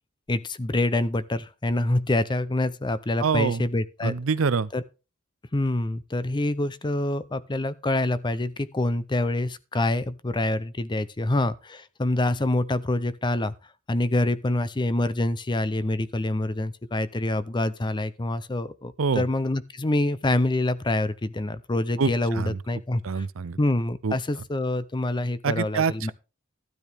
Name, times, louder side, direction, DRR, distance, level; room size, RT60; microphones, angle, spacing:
voice 1, 0.3-4.2 4.7-4.8 5.5-13.5 13.9-23.2 23.6-26.1, left 2 dB, 25° left, 0.6 m, -26 dB
voice 2, 3.2-3.6 4.0-4.7 19.0-19.2 22.0-22.6 23.0-23.6 24.0-24.2 25.4-26.1, right 5 dB, 80° right, 0.6 m, -25 dB
12.5 x 10.5 x 3.5 m
head